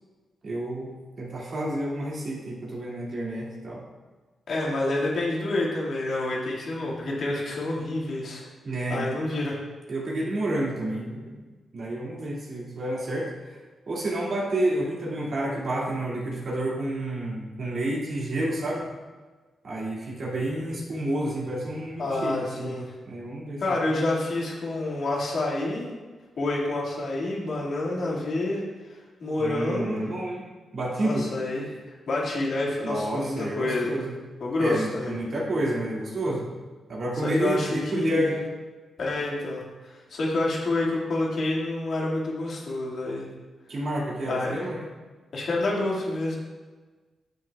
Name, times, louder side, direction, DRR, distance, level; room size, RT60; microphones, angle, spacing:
voice 1, 0.4-3.8 8.6-9.1 9.9-11.4 11.7-13.6 13.9-18.8 19.6-22.7 23.1-23.8 29.4-31.3 32.8-34.1 34.6-36.5 36.9-38.4 43.7-44.8, right 1 dB, 60° right, -4 dB, 2.4 m, -29 dB
voice 2, 4.5-8.4 8.9-9.6 22.0-22.8 23.6-25.9 26.4-30.1 31.0-33.9 34.4-35.4 37.2-38.3 39.0-43.3 44.2-44.6 45.3-46.4, left 2 dB, 65° left, -4 dB, 2.2 m, -28 dB
10.5 x 6.3 x 2.4 m, 1.3 s
supercardioid pair, 55°, 0 cm